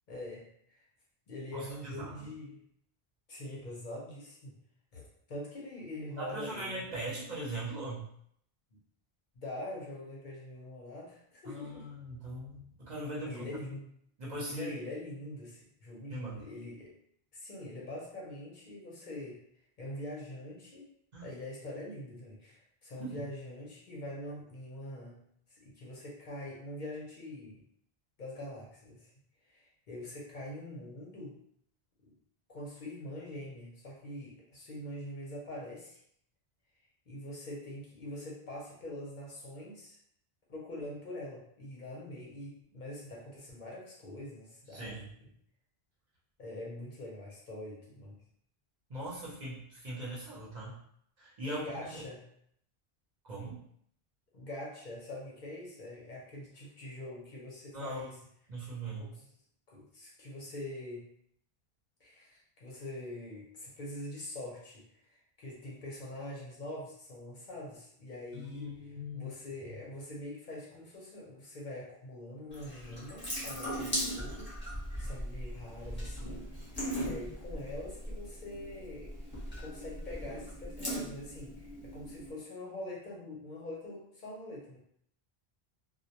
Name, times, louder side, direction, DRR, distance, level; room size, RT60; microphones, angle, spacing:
voice 1, 0.1-0.8 1.3-2.6 3.3-4.6 4.9-6.9 9.3-11.9 13.2-13.9 14.4-16.9 17.3-19.4 19.8-20.9 21.2-25.2 25.5-27.6 28.2-29.1 29.5-31.4 32.0-32.1 32.5-36.0 37.1-40.0 40.5-45.3 46.4-48.2 51.4-52.2 54.3-58.2 59.0-59.3 59.7-61.1 62.0-74.5 75.0-79.1 79.6-84.8, left 1 dB, 55° left, -4 dB, 0.7 m, -44 dB
voice 2, 1.5-2.3 6.2-8.1 11.4-13.4 14.2-14.8 16.1-16.4 21.1-21.3 23.0-23.2 44.7-45.1 48.9-50.8 51.2-52.0 53.2-53.6 57.7-58.0 58.5-59.1 68.3-69.3, right 1 dB, 50° right, -6 dB, 0.7 m, -40 dB
Water tap faucet / Sink (filling or washing) / Drip, 72.5-82.3, equal, 10° left, 0.8 m, -39 dB
2.1 x 2.1 x 2.8 m, 0.68 s
omnidirectional pair, 1.0 m